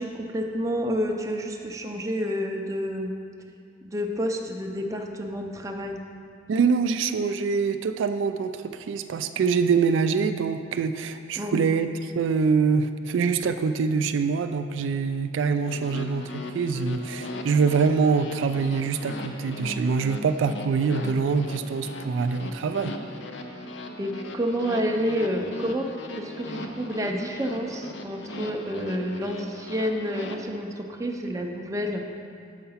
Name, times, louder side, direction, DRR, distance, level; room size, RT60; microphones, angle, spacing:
voice 1, 0.0-3.1 3.8-6.0 11.4-11.7 24.0-25.9 26.2-32.0, equal, 15° right, 2 dB, 0.5 m, -29 dB
voice 2, 6.5-11.9 12.2-22.9, right 5 dB, 80° right, 9 dB, 0.3 m, -24 dB
sound 1, 15.6-30.4, left 2 dB, 65° left, 0.6 m, -38 dB
6.5 x 5.7 x 5.6 m, 2.3 s
head